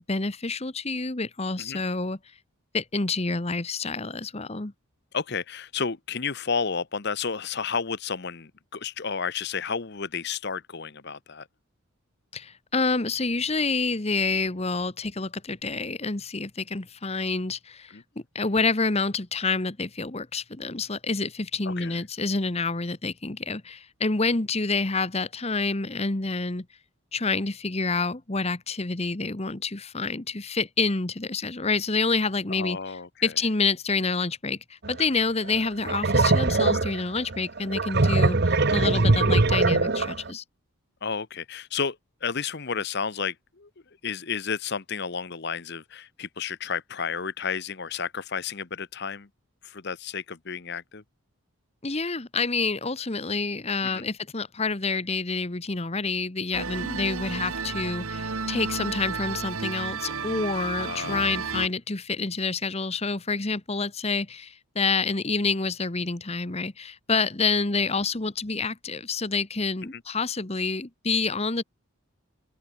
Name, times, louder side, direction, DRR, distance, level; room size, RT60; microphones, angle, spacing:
voice 1, 0.1-2.4 2.7-4.7 12.3-18.0 18.3-26.6 27.1-32.8 33.2-40.4 51.8-71.6, left 4 dB, 30° left, 1.1 m, -28 dB
voice 2, 5.1-11.5 17.9-18.0 21.6-22.0 32.5-33.3 41.0-43.7 44.0-49.3 49.6-51.0 53.8-54.0 60.8-61.4 69.9-70.0, left 6 dB, 50° left, 0.9 m, -32 dB
sound 1, 34.8-35.0 35.5-40.3, right 3 dB, 45° right, 1.0 m, -22 dB
sound 2, 56.5-61.7, right 5 dB, 75° right, 1.5 m, -32 dB
open air
head